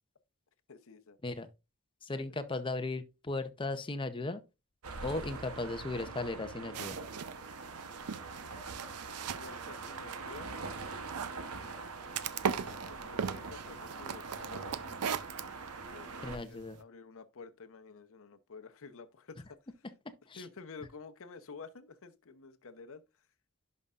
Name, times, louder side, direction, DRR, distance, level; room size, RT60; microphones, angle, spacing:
voice 1, 0.7-1.2 2.1-2.3 9.3-10.6 12.4-15.0 15.9-19.6 20.4-23.3, left 4 dB, 65° left, 0.8 m, -51 dB
voice 2, 2.0-4.4 5.0-7.0 16.2-16.8 20.3-20.4, left 2 dB, 25° left, 0.7 m, -36 dB
sound 1, 4.8-16.4, right 4 dB, 70° right, 1.0 m, -43 dB
sound 2, 5.2-6.3 8.5-9.0 11.7-11.9 12.7-13.0, left 1 dB, 5° left, 4.9 m, -57 dB
sound 3, 6.7-16.8, right 7 dB, 90° right, 0.5 m, -40 dB
11.0 x 5.4 x 2.5 m
head